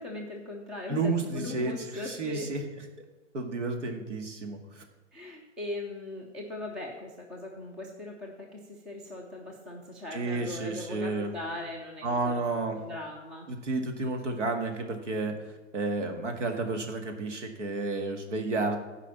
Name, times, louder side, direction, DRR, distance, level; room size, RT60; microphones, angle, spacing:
voice 1, 0.0-2.5 5.1-12.4 12.7-13.5, left 2 dB, ahead, 1 dB, 0.3 m, -39 dB
voice 2, 0.9-2.6 3.3-4.8 10.1-11.3 12.0-12.8 13.5-15.3 15.7-18.8, right 3 dB, 75° right, 5 dB, 2.0 m, -31 dB
13.0 x 5.0 x 7.1 m, 1.1 s
hypercardioid pair, 135°, 37 cm